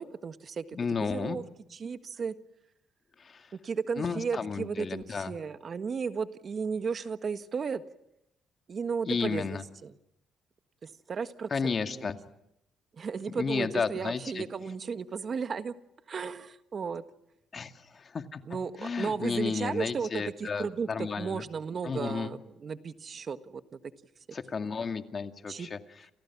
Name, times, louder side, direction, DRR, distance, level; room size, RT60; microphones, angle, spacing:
voice 1, 0.0-0.6 1.0-1.4 1.7-2.3 3.6-7.8 8.7-9.9 10.8-12.1 13.0-15.7 16.1-17.0 18.5-23.9 25.5-25.7, right 5 dB, 45° right, 10 dB, 1.5 m, -34 dB
voice 2, 0.7-1.4 3.2-3.5 4.0-5.3 9.1-9.6 11.5-12.2 13.3-14.4 17.5-18.4 18.8-21.4 21.8-22.3 24.3-25.8, left 5 dB, 40° left, 7 dB, 2.2 m, -32 dB
29.5 x 28.5 x 6.1 m, 0.82 s
cardioid pair, 90°, 0 cm